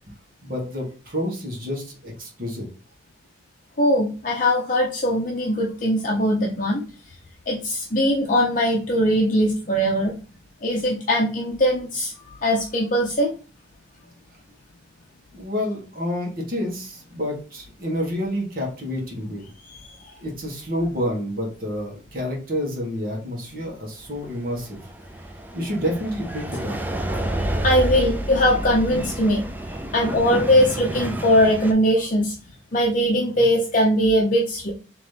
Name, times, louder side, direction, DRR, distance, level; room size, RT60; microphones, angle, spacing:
voice 1, 0.4-2.6 15.3-19.5 20.2-24.8 25.5-26.8, equal, 50° right, -1 dB, 1.5 m, -29 dB
voice 2, 3.8-6.8 7.5-10.1 10.6-12.1 12.4-13.3 19.7-20.1 27.6-29.4 29.9-32.3 32.7-34.7, equal, 45° left, -1 dB, 0.6 m, -20 dB
sound 1, 24.2-31.7, right 1 dB, 10° right, 0.4 m, -29 dB
4.0 x 3.0 x 3.3 m, 0.37 s
head